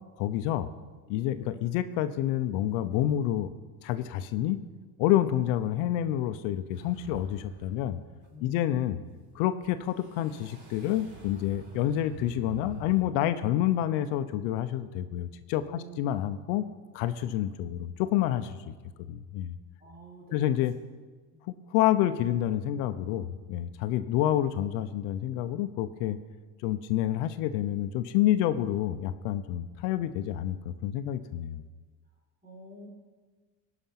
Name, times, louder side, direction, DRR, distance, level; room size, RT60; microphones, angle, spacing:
voice 1, 0.2-0.7 1.1-3.5 3.8-4.6 5.0-8.0 8.4-9.0 9.3-16.6 16.9-18.7 19.1-19.5 20.3-20.7 21.5-26.2 26.6-31.6, left 12 dB, 75° left, 11 dB, 0.8 m, -28 dB
sound 1, 6.7-7.9 8.2-8.3 9.6-13.0, right 3 dB, 50° right, 4.6 m, -46 dB
voice 2, 8.3-8.8 15.6-16.1 18.8-19.1 19.8-20.7 21.3-21.5 32.4-32.9, equal, 20° right, -1 dB, 3.9 m, -49 dB
17.0 x 6.0 x 5.8 m, 1.4 s
cardioid pair, 120°, 44 cm